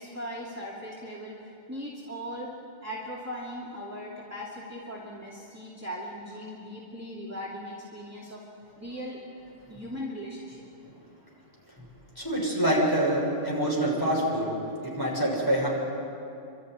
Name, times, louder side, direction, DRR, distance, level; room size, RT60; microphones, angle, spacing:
voice 1, 0.0-1.3 1.7-2.5 2.8-8.4 8.8-9.2 9.7-10.6, equal, 15° right, -5 dB, 2.5 m, -38 dB
voice 2, 12.2-14.5 14.8-15.7, right 1 dB, 20° left, -4 dB, 6.4 m, -26 dB
29.0 x 13.0 x 9.8 m, 2.6 s
omnidirectional pair, 1.2 m